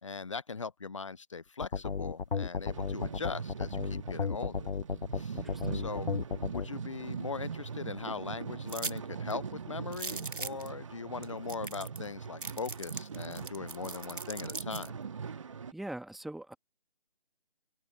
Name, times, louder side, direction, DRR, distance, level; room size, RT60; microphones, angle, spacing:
voice 1, 0.0-4.7 5.1-5.4 5.7-6.1 6.5-15.0, left 4 dB, 35° left, 0.9 m, -40 dB
sound 1, 1.6-6.7, left 5 dB, 70° left, 0.6 m, -33 dB
sound 2, 2.5-15.7, right 6 dB, 30° right, 2.0 m, -41 dB
voice 2, 5.3-5.8 15.7-16.5, right 1 dB, ahead, 1.8 m, -42 dB
sound 3, 8.7-9.0 9.3-9.4 9.9-10.7 11.2-11.3 11.5-12.1 12.4-14.9, right 3 dB, 60° right, 2.4 m, -39 dB
figure-of-eight pair, 155°, 29 cm